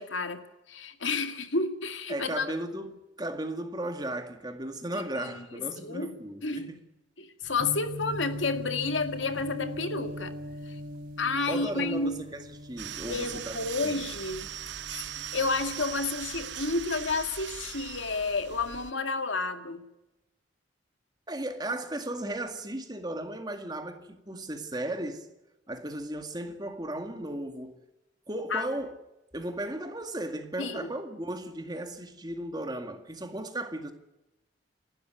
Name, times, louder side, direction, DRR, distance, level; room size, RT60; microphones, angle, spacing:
voice 1, 0.0-2.5 4.9-6.1 6.4-6.7 7.2-10.3 10.6-10.8 11.2-12.2 13.1-14.5 14.9-19.8 28.5-28.7 30.6-30.9, left 3 dB, 85° left, 2.1 m, -31 dB
voice 2, 2.1-6.8 11.5-14.1 21.3-25.3 25.7-27.8 28.3-28.9 29.3-33.9, right 1 dB, 20° right, 2.1 m, -36 dB
sound 1, 7.4-17.5 17.8-18.6, equal, 45° right, 3.5 m, -42 dB
sound 2, 12.8-18.9, right 10 dB, 70° right, 0.9 m, -40 dB
28.0 x 12.5 x 9.4 m
head